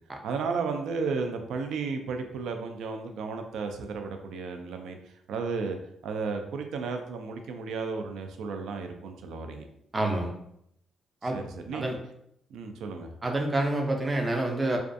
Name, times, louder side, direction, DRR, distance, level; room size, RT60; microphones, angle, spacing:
voice 1, 0.2-5.8 6.0-9.7 11.2-11.8 12.5-13.1, right 4 dB, 85° right, 5 dB, 0.3 m, -33 dB
voice 2, 9.9-10.3 11.2-11.4 11.7-12.0 13.2-14.8, right 2 dB, 20° right, 2 dB, 0.4 m, -27 dB
2.4 x 2.3 x 2.5 m, 0.75 s
cardioid pair, 120°, 0 cm